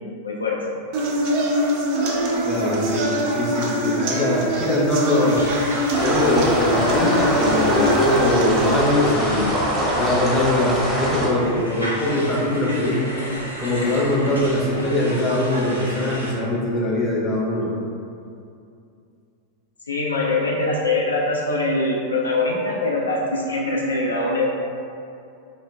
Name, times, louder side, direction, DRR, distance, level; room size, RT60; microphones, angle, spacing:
voice 1, 0.2-0.6 19.9-24.5, left 2 dB, 75° left, -3 dB, 0.3 m, -23 dB
sound 1, 0.9-8.9, right 1 dB, 45° right, 0.4 m, -23 dB
voice 2, 2.4-5.4 6.0-9.5 10.0-13.1 13.6-17.7, left 1 dB, 20° left, -4 dB, 0.6 m, -22 dB
sound 2, 5.3-16.3, equal, 85° right, 0.6 m, -35 dB
sound 3, 5.9-11.3, equal, 10° right, 0.9 m, -23 dB
3.1 x 2.1 x 3.3 m, 2.5 s
figure-of-eight pair, 90°, 0 cm